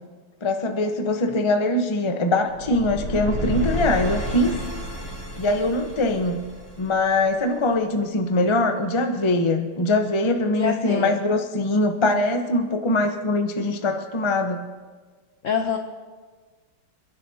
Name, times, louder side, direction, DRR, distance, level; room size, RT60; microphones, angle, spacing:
voice 1, 0.4-4.6 5.4-6.4 6.8-14.6, left 2 dB, 40° left, 5 dB, 0.4 m, -22 dB
sound 1, 2.5-7.5, equal, 75° right, 6.8 m, -31 dB
voice 2, 10.5-11.2 15.4-15.8, left 7 dB, 70° left, 5 dB, 0.7 m, -25 dB
29.0 x 11.0 x 2.8 m, 1.4 s
omnidirectional pair, 2.3 m